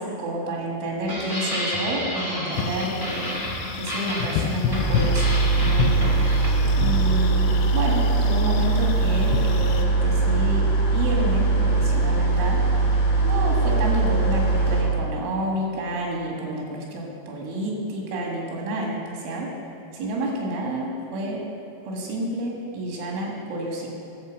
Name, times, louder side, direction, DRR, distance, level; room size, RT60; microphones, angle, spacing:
voice 1, 0.0-3.4 3.7-6.1 6.8-12.6 13.2-19.5 19.9-21.4 21.9-23.9, right 1 dB, 85° right, -2 dB, 4.3 m, -29 dB
sound 1, 1.0-6.8, equal, 15° right, 0.8 m, -31 dB
sound 2, 2.5-9.8, left 7 dB, 85° left, 2.4 m, -30 dB
sound 3, 4.7-14.8, right 3 dB, 40° left, 1.3 m, -21 dB
12.0 x 5.8 x 7.4 m, 2.7 s
omnidirectional pair, 5.4 m